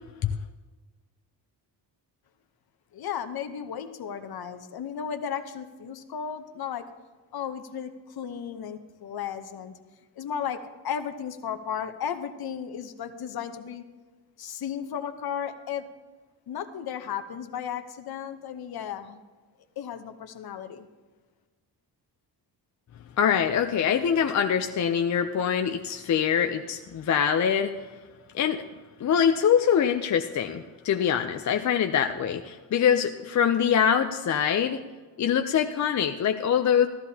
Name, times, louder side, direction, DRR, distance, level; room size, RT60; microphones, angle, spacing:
voice 1, 2.9-6.9 7.3-9.7 10.2-13.8 14.4-15.9 16.5-19.3 19.8-20.9, left 8 dB, 60° left, 9 dB, 0.9 m, -34 dB
voice 2, 23.2-27.7 28.3-28.6 29.0-34.8 35.2-36.9, left 8 dB, 45° left, 6 dB, 0.5 m, -24 dB
14.5 x 13.0 x 2.8 m, 1.3 s
wide cardioid pair, 160°, 43 cm